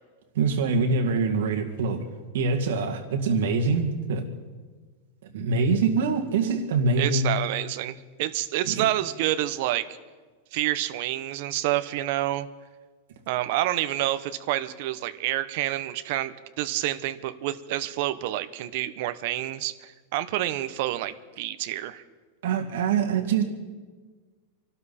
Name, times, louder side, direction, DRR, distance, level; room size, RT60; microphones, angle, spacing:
voice 1, 0.3-2.0 2.3-4.3 5.3-7.3 8.7-8.9 22.4-23.4, right 4 dB, 70° right, 3 dB, 2.1 m, -24 dB
voice 2, 7.0-10.0 10.5-12.5 13.3-22.0, right 14 dB, 45° right, 12 dB, 0.8 m, -28 dB
27.0 x 12.0 x 4.3 m, 1.4 s
supercardioid pair, 175°, 0 cm